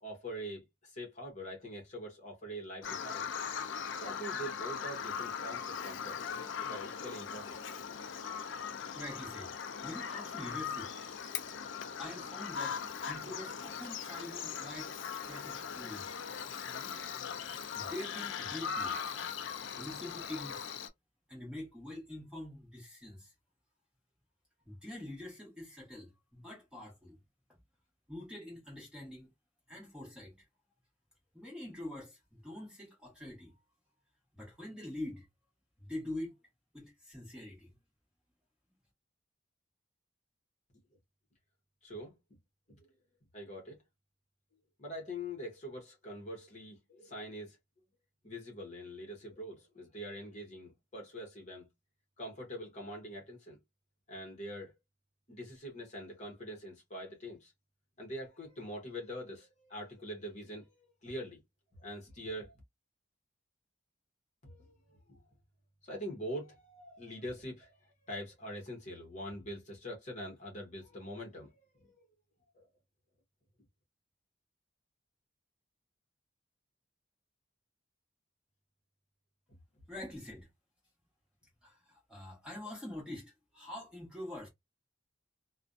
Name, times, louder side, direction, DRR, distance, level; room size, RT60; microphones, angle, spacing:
voice 1, 0.0-3.3 4.0-6.2 6.7-7.6 41.8-42.2 42.7-42.9 43.3-43.8 44.8-47.6 48.2-51.7 52.2-53.6 54.1-54.7 55.3-57.5 58.0-60.8 61.0-61.4 61.8-62.6 64.4-65.2 65.8-72.1 72.5-72.7, equal, 35° left, 0.9 m, -44 dB
Bird vocalization bird call bird song, 2.8-20.9, left 7 dB, 65° left, 0.4 m, -40 dB
voice 2, 8.9-9.6 9.8-10.9 12.0-16.2 17.7-19.0 19.8-20.7 21.3-23.3 24.7-27.2 27.5-27.6 28.1-29.3 29.7-30.4 31.3-33.5 34.3-35.3 35.8-36.3 36.7-37.7 79.9-80.5 81.6-84.5, left 1 dB, 5° right, 1.1 m, -45 dB
2.4 x 2.1 x 2.5 m
head